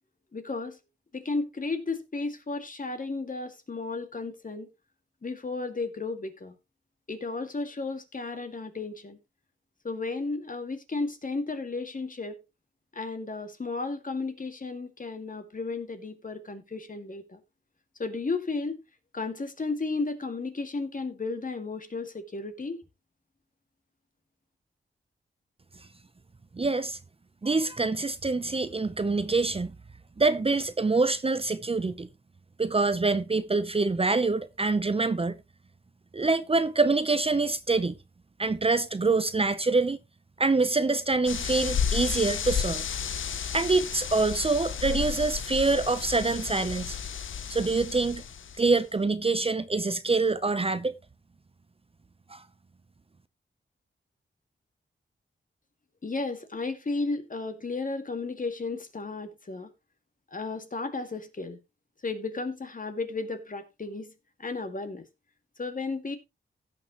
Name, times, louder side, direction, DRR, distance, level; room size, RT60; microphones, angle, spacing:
voice 1, 0.3-0.8 1.1-4.7 5.2-6.5 7.1-9.2 9.8-12.4 12.9-17.4 18.0-18.7 19.1-22.8 56.0-59.7 60.3-61.6 62.0-64.1 64.4-65.0 65.6-66.2, left 3 dB, 40° left, 2.1 m, -33 dB
voice 2, 26.5-27.0 27.4-29.7 30.2-32.1 32.6-35.4 36.1-38.0 38.4-40.0 40.4-42.8 43.5-47.0 47.5-48.2 48.6-51.0 52.3-52.4, right 3 dB, 30° right, 0.7 m, -25 dB
sound 1, 41.3-48.7, left 7 dB, 80° left, 0.8 m, -32 dB
16.5 x 6.7 x 3.0 m
wide cardioid pair, 90°, 20 cm